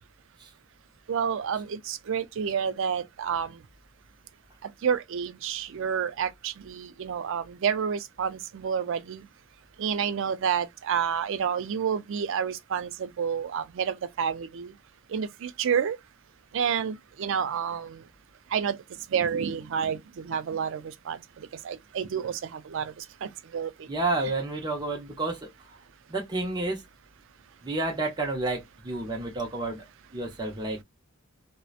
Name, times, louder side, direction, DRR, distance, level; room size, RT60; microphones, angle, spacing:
voice 1, 1.1-3.5 4.8-9.2 9.8-14.7 15.1-16.0 16.5-18.0 18.5-18.8 19.1-21.2 21.6-22.9 23.2-23.7, right 7 dB, 65° right, 0.4 m, -29 dB
voice 2, 23.9-25.8 26.1-26.8 27.6-29.8 30.1-30.8, right 2 dB, 20° right, 0.6 m, -30 dB
2.7 x 2.0 x 2.3 m
head